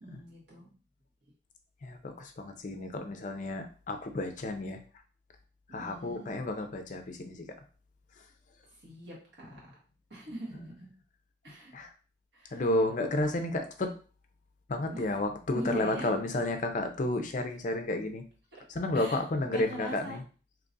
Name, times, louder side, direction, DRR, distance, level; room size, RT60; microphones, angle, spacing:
voice 1, 0.0-0.7 5.8-6.3 8.8-9.6 10.1-10.9 11.4-11.7 12.3-12.6 14.8-15.1 15.5-16.1 18.5-18.6 18.9-19.2 19.5-20.2, right 1 dB, 60° right, -5 dB, 1.5 m, -41 dB
voice 2, 1.8-4.8 5.7-7.4 11.7-11.9 12.5-13.9 14.7-18.2 18.7-20.2, left 2 dB, 40° left, 6 dB, 0.5 m, -31 dB
2.9 x 2.4 x 3.9 m, 0.38 s
head